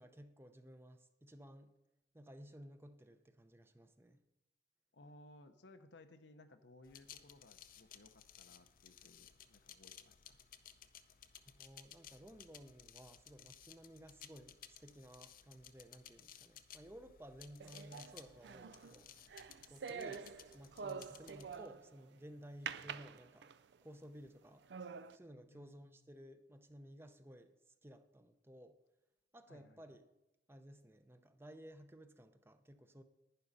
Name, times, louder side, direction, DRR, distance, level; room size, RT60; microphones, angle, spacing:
voice 1, 0.0-1.8 2.1-4.2 11.4-19.1 19.7-23.5 23.8-24.7 25.1-28.8 29.3-30.1 30.5-33.0, equal, 15° right, 8 dB, 0.6 m, -56 dB
voice 2, 4.9-10.4 19.9-20.0 25.5-26.1 29.5-30.0, left 2 dB, 80° left, 8 dB, 0.9 m, -61 dB
sound 1, 6.9-21.7, left 9 dB, 50° left, 0.6 m, -59 dB
sound 2, 17.6-22.0 22.7-23.8 24.3-24.4 24.7-25.2, right 6 dB, 70° right, 0.4 m, -47 dB
11.0 x 10.0 x 4.1 m, 0.95 s
head